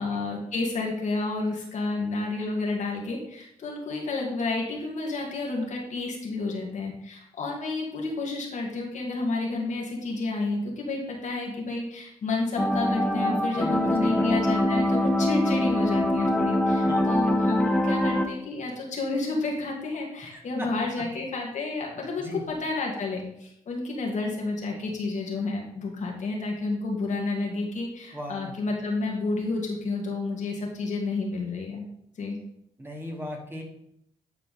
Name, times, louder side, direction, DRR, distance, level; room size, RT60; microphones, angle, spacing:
voice 1, 0.0-31.9 32.2-32.4, left 3 dB, 65° left, -1 dB, 2.1 m, -30 dB
sound 1, 12.6-18.2, left 1 dB, 5° left, 1.3 m, -24 dB
voice 2, 13.6-14.3 16.9-17.1 20.3-20.7 22.2-22.4 28.1-28.6 32.8-33.6, left 1 dB, 15° right, 0 dB, 2.3 m, -37 dB
9.7 x 4.5 x 4.2 m, 0.76 s
supercardioid pair, 50°, 14 cm